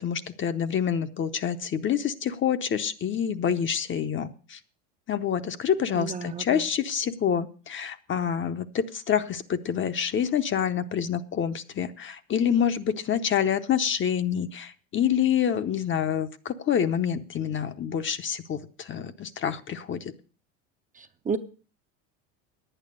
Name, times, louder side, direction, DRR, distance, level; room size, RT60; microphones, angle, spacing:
voice 1, 0.0-4.6 5.1-20.1, left 8 dB, 30° left, 10 dB, 0.8 m, -27 dB
voice 2, 6.0-6.6 21.0-21.4, right 5 dB, 20° right, 7 dB, 0.7 m, -32 dB
10.5 x 8.9 x 6.5 m, 0.39 s
supercardioid pair, 95°, 39 cm